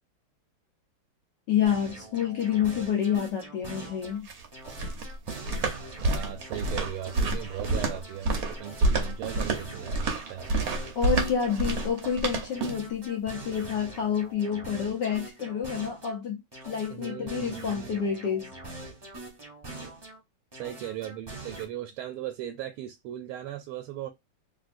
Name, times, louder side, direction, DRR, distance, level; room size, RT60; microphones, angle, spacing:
voice 1, 1.5-4.3 10.9-18.5, left 8 dB, 65° left, 1.2 m, -28 dB
sound 1, 1.6-4.2 4.5-8.2 8.5-12.2 12.5-16.2 16.5-20.2 20.5-21.6, right 2 dB, 20° right, 0.6 m, -43 dB
sound 2, 4.0-12.9, right 2 dB, 60° right, 0.9 m, -29 dB
voice 2, 6.0-10.4 16.9-18.0 20.5-24.1, right 11 dB, 85° right, 1.5 m, -38 dB
3.4 x 2.7 x 2.5 m
omnidirectional pair, 2.4 m